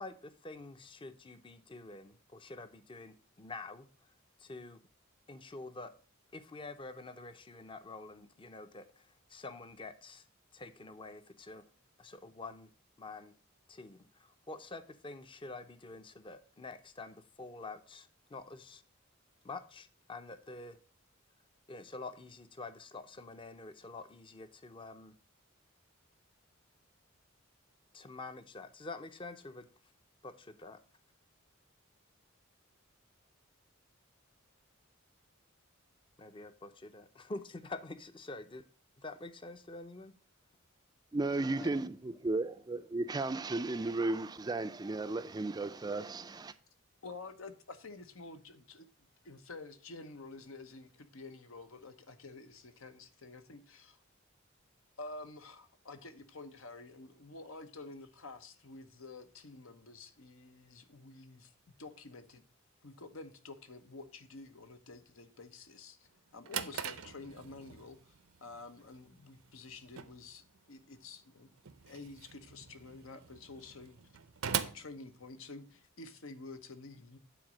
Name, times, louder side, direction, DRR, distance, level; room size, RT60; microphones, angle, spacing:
voice 1, 0.0-3.9 4.4-4.8 5.3-5.9 6.3-10.2 10.5-11.6 12.0-12.7 13.0-13.3 13.7-18.8 19.4-20.8 21.7-25.1 27.9-29.7 30.2-30.8 36.2-38.6 39.0-40.1, left 3 dB, 25° left, 0.6 m, -47 dB
voice 2, 41.1-41.9 42.2-46.5, right 2 dB, 20° right, 0.4 m, -34 dB
voice 3, 47.0-48.9 49.2-54.0 55.0-61.5 61.8-62.4 62.8-68.1 68.4-71.5 71.9-74.0 74.7-77.2, left 3 dB, 80° left, 1.0 m, -49 dB
Drawer open or close, 66.1-75.8, right 8 dB, 85° right, 0.7 m, -43 dB
9.2 x 4.0 x 6.1 m
head